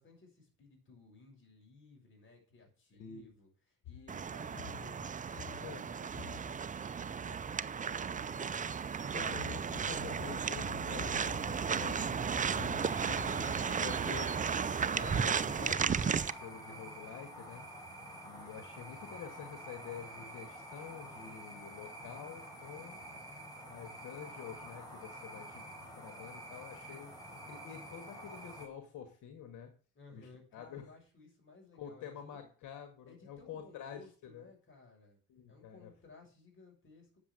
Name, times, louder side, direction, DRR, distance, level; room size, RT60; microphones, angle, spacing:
voice 1, 0.0-3.5 3.8-8.7 12.5-14.5 29.9-32.5 33.1-35.2 35.5-37.2, left 3 dB, 40° left, 1 dB, 6.5 m, -57 dB
voice 2, 2.9-3.3 5.6-5.9 9.1-12.2 12.6-12.7 13.1-13.2 13.8-14.4 14.9-17.6 18.2-23.0 23.7-29.7 30.1-30.9 31.7-34.5 35.3-35.9, left 8 dB, 85° left, 7 dB, 1.8 m, -48 dB
sound 1, 3.8-5.0 5.3-5.8 6.1-8.6 8.9-9.0 9.3-13.8, left 9 dB, 65° left, 5.2 m, -50 dB
sound 2, 4.1-16.3, right 6 dB, 25° right, 0.5 m, -34 dB
sound 3, 12.8-28.7, right 1 dB, 15° left, 5.0 m, -48 dB
8.7 x 7.3 x 8.6 m, 0.39 s
cardioid pair, 90°, 30 cm